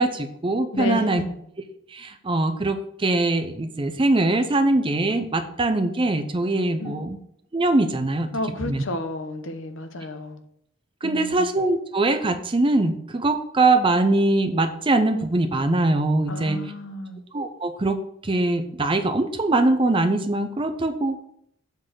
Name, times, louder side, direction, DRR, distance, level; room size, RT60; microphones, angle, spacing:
voice 1, 0.0-1.2 1.9-7.2 7.5-8.3 8.6-8.8 11.0-16.6 17.3-21.2, right 2 dB, 25° right, 8 dB, 0.6 m, -22 dB
voice 2, 0.7-1.3 6.8-7.1 8.3-10.4 11.0-11.4 16.3-17.2, left 1 dB, 65° left, 8 dB, 0.8 m, -31 dB
7.6 x 3.9 x 6.2 m, 0.72 s
head